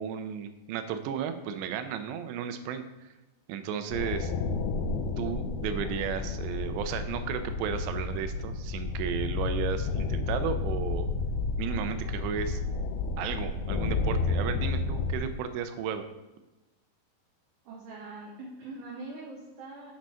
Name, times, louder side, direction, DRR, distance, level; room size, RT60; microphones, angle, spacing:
voice 1, 0.0-2.8 3.5-4.3 5.2-11.1 11.6-12.6 13.2-16.0, right 8 dB, 90° right, 9 dB, 2.9 m, -34 dB
sound 1, 3.9-15.2, left 4 dB, 80° left, 2.4 m, -31 dB
voice 2, 14.1-14.6 17.7-19.9, right 2 dB, 65° right, -3 dB, 2.1 m, -43 dB
8.3 x 6.1 x 4.3 m, 1.1 s
omnidirectional pair, 4.9 m